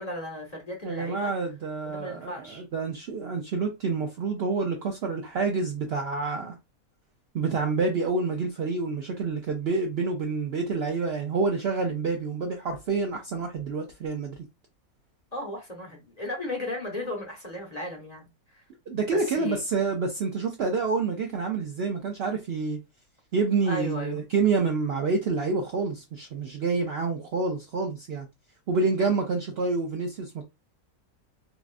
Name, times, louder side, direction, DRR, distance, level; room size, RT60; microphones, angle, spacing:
voice 1, 0.0-1.3 1.8-2.6 15.3-18.6 19.1-19.6 23.7-24.2 29.0-29.1, left 1 dB, 30° left, 0.9 m, -35 dB
voice 2, 0.8-6.6 7.3-14.4 18.9-22.8 23.3-28.3 28.7-30.4, right 4 dB, 60° right, 0.6 m, -28 dB
4.0 x 2.4 x 2.4 m
omnidirectional pair, 1.5 m